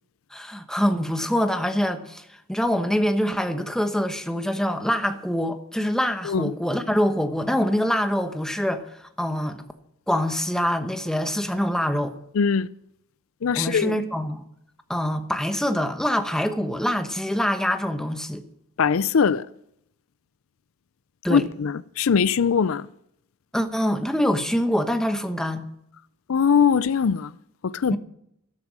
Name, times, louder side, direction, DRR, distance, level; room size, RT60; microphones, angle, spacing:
voice 1, 0.3-8.8 9.2-9.7 10.1-12.1 13.5-14.5 14.9-18.4 21.2-21.5 23.5-25.7 27.9-28.0, equal, 5° left, 1.1 m, -25 dB
voice 2, 12.4-12.7 13.4-14.0 18.8-19.4 21.3-22.9 26.3-27.3 27.6-28.0, left 6 dB, 70° left, 0.5 m, -21 dB
13.0 x 12.5 x 6.2 m
head